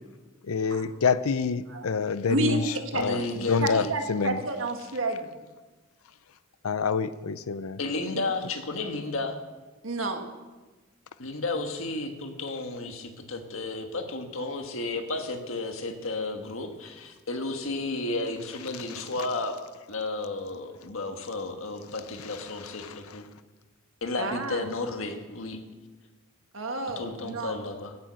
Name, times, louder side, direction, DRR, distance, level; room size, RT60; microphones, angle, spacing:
voice 1, 0.4-4.4 6.6-7.8 22.8-22.9, left 5 dB, 85° left, 15 dB, 0.6 m, -27 dB
voice 2, 2.3-3.3 3.6-5.3 9.8-10.2 24.2-24.6 26.5-27.6, right 2 dB, 65° right, 4 dB, 1.8 m, -30 dB
voice 3, 2.9-3.9 7.8-9.4 11.2-19.6 19.9-23.2 24.0-25.6 27.0-28.0, left 2 dB, 70° left, 5 dB, 1.7 m, -33 dB
16.5 x 8.8 x 6.4 m, 1.3 s
head